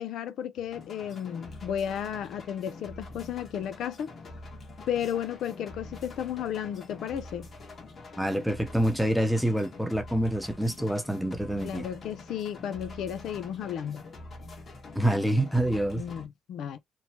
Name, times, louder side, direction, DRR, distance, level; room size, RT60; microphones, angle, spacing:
voice 1, 0.0-4.1 4.9-7.5 11.6-14.0 15.9-16.8, left 9 dB, 75° left, 0.4 m, -33 dB
sound 1, 0.7-16.2, left 2 dB, 45° left, 1.2 m, -45 dB
voice 2, 8.2-11.9 14.9-16.0, right 1 dB, ahead, 0.8 m, -26 dB
3.0 x 2.1 x 2.8 m
cardioid pair, 90°, 0 cm